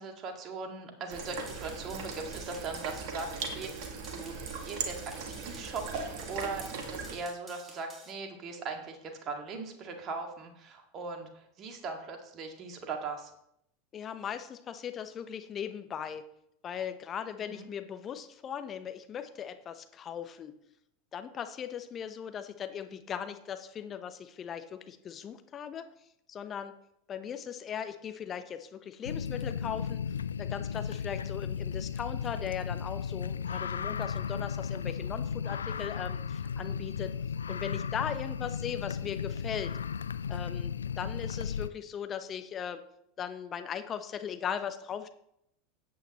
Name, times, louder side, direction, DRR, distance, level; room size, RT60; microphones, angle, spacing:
voice 1, 0.0-4.3 4.6-13.3 17.4-17.7, right 4 dB, 35° right, 3 dB, 2.0 m, -40 dB
sound 1, 1.1-7.2, right 5 dB, 55° right, 1.8 m, -39 dB
sound 2, 1.3-8.1, right 2 dB, 15° right, 3.3 m, -52 dB
voice 2, 13.9-16.2 16.6-20.5 21.1-25.9 26.3-26.7 27.1-30.0 30.4-37.1 37.5-39.7 40.3-42.8 43.2-45.1, left 8 dB, 30° left, 9 dB, 0.9 m, -38 dB
sound 3, 29.0-41.7, left 7 dB, 75° left, 0.3 m, -35 dB
13.5 x 8.6 x 3.0 m, 0.76 s
figure-of-eight pair, 85°, 0 cm